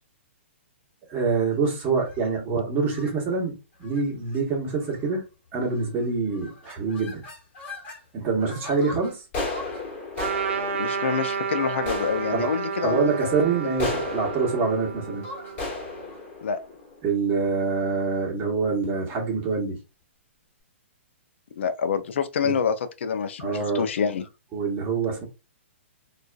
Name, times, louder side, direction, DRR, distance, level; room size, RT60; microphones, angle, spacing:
voice 1, 1.1-5.2 5.5-7.2 8.1-9.2 12.3-12.5 12.8-15.2 17.0-19.8 22.4-22.6 23.4-23.8 24.5-25.2, right 4 dB, 25° right, 1.1 m, -25 dB
sound 1, 1.9-2.3 2.9-3.1 3.8-4.0 4.3-4.4 4.8-5.1 5.7-6.0 6.3-8.0 8.4-17.6, left 3 dB, 25° left, 1.3 m, -36 dB
Trumpet, 10.2-16.0, right 6 dB, 65° right, 0.7 m, -31 dB
voice 2, 10.7-13.4 16.4-16.6 21.6-22.7 23.0-24.2, left 6 dB, 65° left, 0.4 m, -27 dB
2.4 x 2.3 x 2.2 m
hypercardioid pair, 125°, 7 cm